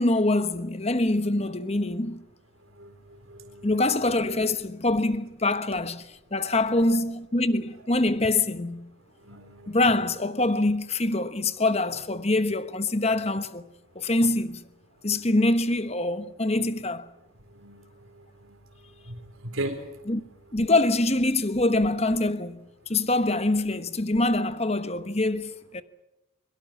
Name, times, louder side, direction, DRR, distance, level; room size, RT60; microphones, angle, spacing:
voice 1, 0.0-2.2 3.6-8.9 9.7-13.7 13.9-14.6 15.0-17.1 20.1-20.2 20.5-25.8, left 2 dB, 30° left, 1.2 m, -25 dB
voice 2, 3.3-3.7 6.5-6.9 9.3-9.7 17.6-17.8 19.1-19.2 19.5-19.8, right 1 dB, 90° right, 4.0 m, -35 dB
23.0 x 23.0 x 7.5 m
head